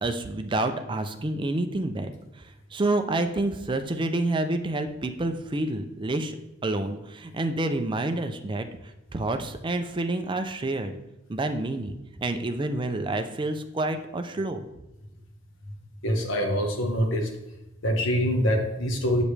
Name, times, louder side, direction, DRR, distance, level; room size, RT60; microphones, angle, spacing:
voice 1, 0.0-2.4 2.7-6.4 6.6-8.7 9.1-11.0 11.3-14.7, right 2 dB, 25° right, 7 dB, 0.5 m, -28 dB
voice 2, 16.0-17.3 17.8-19.2, equal, 65° left, 2 dB, 1.2 m, -24 dB
7.2 x 5.1 x 3.3 m, 0.93 s
head